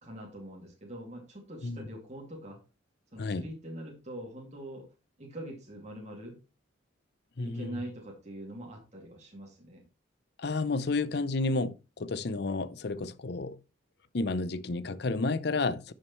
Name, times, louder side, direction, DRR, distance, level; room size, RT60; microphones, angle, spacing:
voice 1, 0.0-2.6 3.1-4.9 5.2-6.4 7.4-9.8, right 1 dB, 35° right, 2.3 m, -43 dB
voice 2, 3.2-3.5 7.4-7.7 10.4-13.6 14.1-15.9, left 3 dB, 55° left, 0.6 m, -31 dB
10.5 x 6.5 x 3.1 m
head